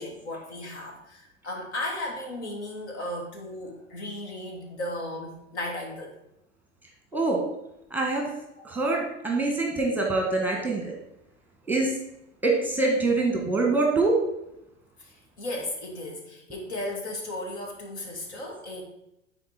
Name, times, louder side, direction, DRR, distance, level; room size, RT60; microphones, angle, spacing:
voice 1, 0.0-6.1 8.6-8.7 15.0-18.8, left 1 dB, 60° left, 1 dB, 2.3 m, -35 dB
voice 2, 7.9-8.2 8.6-10.9 11.7-11.9 12.4-14.1, right 3 dB, 5° right, 0 dB, 1.6 m, -24 dB
11.0 x 4.4 x 4.4 m, 0.86 s
figure-of-eight pair, 95°, 37 cm